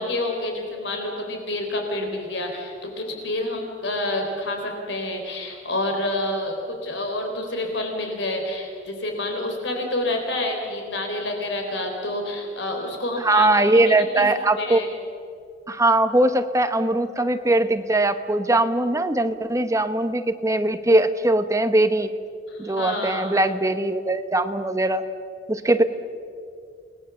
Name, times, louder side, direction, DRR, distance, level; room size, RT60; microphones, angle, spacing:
voice 1, 0.0-13.5 13.7-14.3 14.6-14.9 22.5-23.4, left 1 dB, 75° left, 2 dB, 4.0 m, -28 dB
voice 2, 13.2-14.8 15.7-22.1 22.6-25.0 25.5-25.8, right 2 dB, 15° right, 9 dB, 1.0 m, -21 dB
29.0 x 20.0 x 7.1 m, 2.4 s
head